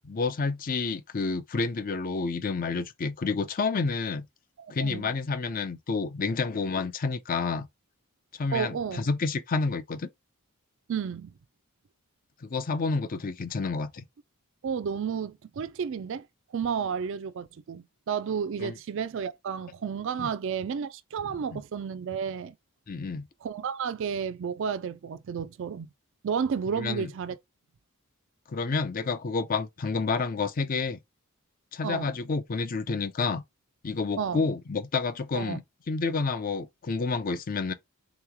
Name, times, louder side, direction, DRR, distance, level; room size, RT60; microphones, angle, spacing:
voice 1, 0.0-4.3 4.7-7.7 8.3-10.1 12.4-14.0 18.6-18.7 20.2-20.3 21.5-21.6 22.9-23.3 26.8-27.1 28.5-31.0 31.7-33.4 33.8-35.6 35.9-37.7, left 4 dB, 40° left, 0.4 m, -29 dB
voice 2, 4.6-5.1 8.5-9.1 10.9-11.3 14.6-16.3 16.5-22.5 23.4-25.9 26.2-27.4 31.8-32.1 34.2-34.4 35.3-35.6, right 6 dB, 55° right, 0.4 m, -32 dB
3.9 x 3.0 x 3.4 m
head